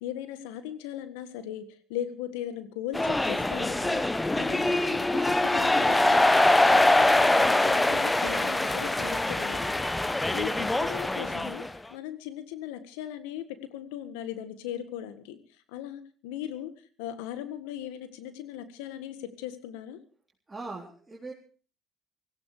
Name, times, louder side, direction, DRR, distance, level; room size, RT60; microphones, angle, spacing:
voice 1, 0.0-4.0 4.3-6.3 6.6-9.9 10.3-11.6 11.9-15.4 15.7-16.7 17.0-20.0, left 11 dB, 85° left, 11 dB, 1.7 m, -38 dB
sound 1, 2.9-11.7, left 2 dB, 15° left, 1.1 m, -24 dB
voice 2, 20.5-21.3, right 3 dB, 20° right, -2 dB, 4.0 m, -40 dB
17.5 x 16.0 x 5.0 m, 0.41 s
hypercardioid pair, 65°, 0 cm